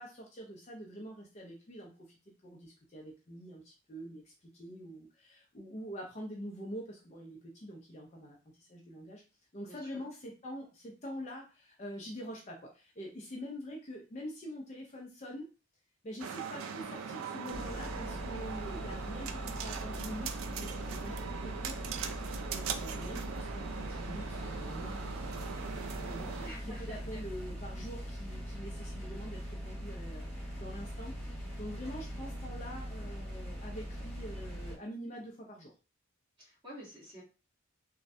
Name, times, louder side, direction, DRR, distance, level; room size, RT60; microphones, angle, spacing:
voice 1, 0.0-9.2 9.5-15.5 16.0-21.8 22.5-35.7, equal, 35° left, -1 dB, 0.5 m, -45 dB
voice 2, 9.7-10.0 26.4-27.2 36.4-37.2, equal, 25° right, -7 dB, 1.5 m, -49 dB
sound 1, 16.2-26.5, right 6 dB, 80° right, 0.3 m, -40 dB
sound 2, 17.5-34.8, equal, ahead, 1.4 m, -41 dB
3.1 x 2.3 x 2.6 m, 0.33 s
head